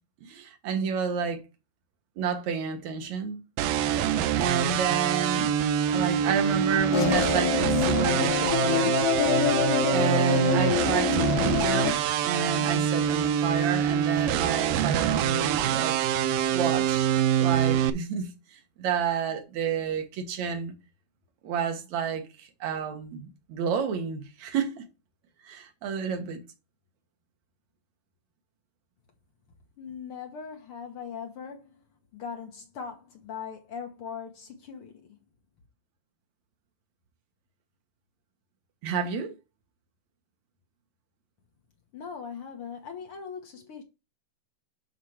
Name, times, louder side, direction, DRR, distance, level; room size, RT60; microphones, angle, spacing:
voice 1, 0.2-1.4 2.2-3.4 4.3-5.5 5.9-8.9 9.9-12.0 12.2-16.0 16.5-17.1 17.4-20.7 21.4-24.8 25.5-26.4 38.8-39.3, right 6 dB, 65° right, 2.6 m, -30 dB
sound 1, 3.6-17.9, right 9 dB, 85° right, 2.3 m, -25 dB
sound 2, 6.9-11.9, left 12 dB, 90° left, 2.5 m, -26 dB
voice 2, 29.8-31.8 32.1-35.2 41.9-43.8, left 6 dB, 60° left, 1.5 m, -40 dB
12.0 x 4.1 x 3.3 m
omnidirectional pair, 3.8 m